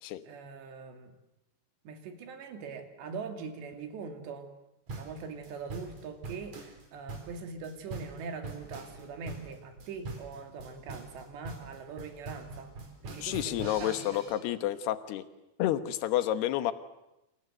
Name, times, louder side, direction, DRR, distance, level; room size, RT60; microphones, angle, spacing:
voice 1, 0.2-1.1 1.8-4.5 5.0-12.8 13.0-14.2, right 5 dB, 75° right, 6 dB, 4.7 m, -42 dB
sound 1, 4.9-14.4, right 3 dB, 40° right, 5.1 m, -43 dB
voice 2, 13.2-15.2 15.6-16.7, left 13 dB, 70° left, 11 dB, 3.2 m, -30 dB
27.5 x 26.5 x 8.1 m, 0.92 s
omnidirectional pair, 5.0 m